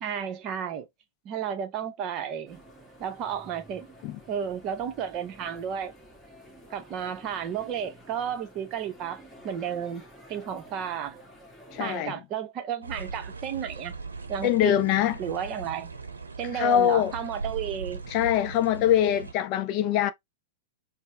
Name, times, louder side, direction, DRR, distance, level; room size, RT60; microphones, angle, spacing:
voice 1, 0.0-0.9 1.2-2.6 3.0-3.9 4.3-5.9 6.7-10.0 10.3-11.2 11.8-13.9 14.3-14.8 15.2-15.9 16.4-18.0, right 8 dB, 35° right, 0.7 m, -32 dB
sound 1, 2.5-12.0, right 1 dB, 5° left, 1.4 m, -51 dB
voice 2, 11.7-12.1 14.4-15.2 16.5-17.1 18.1-20.1, left 11 dB, 40° left, 0.4 m, -23 dB
sound 2, 12.8-19.3, right 4 dB, 80° right, 0.7 m, -39 dB
4.2 x 2.0 x 3.0 m
figure-of-eight pair, 100°, 0 cm